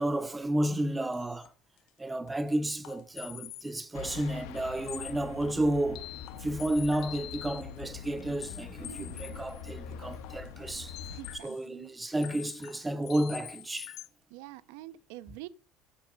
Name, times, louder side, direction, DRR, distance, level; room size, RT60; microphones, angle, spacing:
voice 1, 0.0-1.5 2.0-6.0 6.4-10.9 11.4-13.9, right 1 dB, 10° right, 0.6 m, -31 dB
sound 1, 1.1-1.5 1.8-1.9 2.3-2.4 2.8-3.8 4.0-4.1 4.6-4.7 4.9-11.7 12.1-14.1, left 15 dB, 50° left, 0.7 m, -46 dB
sound 2, 3.9-11.4, left 8 dB, 80° left, 1.2 m, -44 dB
voice 2, 8.9-9.4 11.1-11.9 14.3-15.5, right 16 dB, 75° right, 0.6 m, -46 dB
8.2 x 7.0 x 6.2 m
cardioid pair, 175°, 0 cm